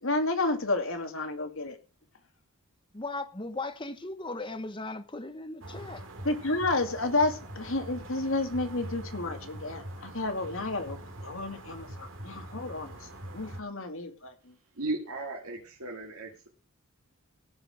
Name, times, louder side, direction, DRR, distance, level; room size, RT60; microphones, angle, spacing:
voice 1, 0.0-1.8 6.2-11.0 11.2-12.9 13.3-14.5, left 2 dB, 60° left, 2.4 m, -31 dB
voice 2, 2.9-6.0, left 2 dB, 20° left, 1.3 m, -37 dB
sound 1, 5.6-13.6, right 1 dB, 60° right, 2.6 m, -43 dB
voice 3, 14.8-16.5, right 2 dB, 75° right, 2.7 m, -36 dB
16.5 x 5.9 x 6.5 m
head